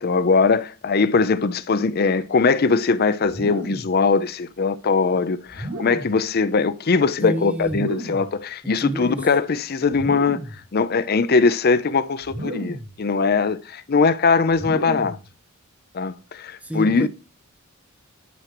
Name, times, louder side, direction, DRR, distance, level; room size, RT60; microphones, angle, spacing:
voice 1, 0.0-10.4 10.7-15.2 15.9-17.1, left 4 dB, 45° left, 0.5 m, -21 dB
sound 1, 3.3-4.0 5.5-6.2 7.6-8.4 9.9-10.6 12.2-13.0 14.5-15.3, right 1 dB, 65° right, 2.6 m, -33 dB
voice 2, 7.2-7.9 8.6-9.3 16.6-17.1, equal, 5° right, 0.3 m, -29 dB
11.0 x 6.2 x 3.0 m
head